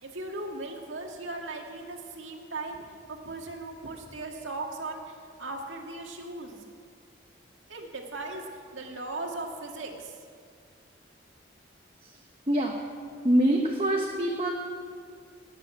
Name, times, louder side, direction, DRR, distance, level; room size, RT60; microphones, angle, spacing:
voice 1, 0.0-2.8 3.1-5.0 5.4-6.6 7.7-8.4 8.7-10.1, right 2 dB, 85° right, 1 dB, 2.0 m, -37 dB
voice 2, 13.2-14.5, right 1 dB, 30° right, 0 dB, 1.1 m, -24 dB
18.5 x 7.0 x 8.2 m, 2.2 s
head